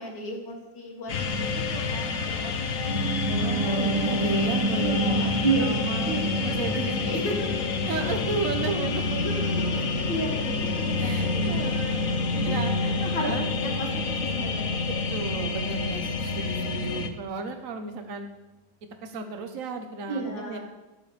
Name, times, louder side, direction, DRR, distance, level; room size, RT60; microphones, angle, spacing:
voice 1, 0.0-2.9 4.7-5.8 6.0-7.5 9.2-11.3 12.3-12.6 13.0-13.3 13.6-14.8 20.1-20.6, right 2 dB, 75° left, -1 dB, 2.9 m, -33 dB
sound 1, 1.1-17.1, left 4 dB, 55° left, 1.1 m, -28 dB
Piano, 2.9-12.9 13.2-13.3, right 3 dB, 15° right, 1.6 m, -32 dB
voice 2, 3.4-7.1 7.9-9.4 11.0-12.1 12.4-13.5 14.9-18.3 19.0-20.6, right 4 dB, 50° right, 6 dB, 1.4 m, -34 dB
21.0 x 7.4 x 3.4 m, 1.1 s
omnidirectional pair, 2.0 m